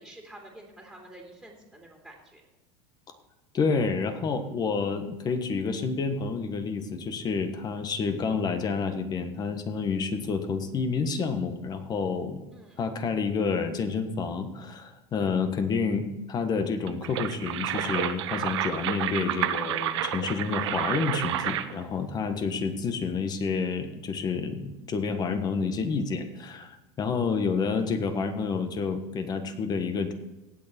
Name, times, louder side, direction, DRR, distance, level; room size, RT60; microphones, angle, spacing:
voice 1, 0.0-2.4 12.5-12.8, right 1 dB, ahead, -1 dB, 2.8 m, -48 dB
voice 2, 3.5-12.4 12.8-30.1, left 5 dB, 30° left, 8 dB, 1.4 m, -29 dB
sound 1, 16.9-21.8, right 12 dB, 90° right, 0.8 m, -30 dB
17.5 x 6.7 x 4.4 m, 1.1 s
supercardioid pair, 135°, 14 cm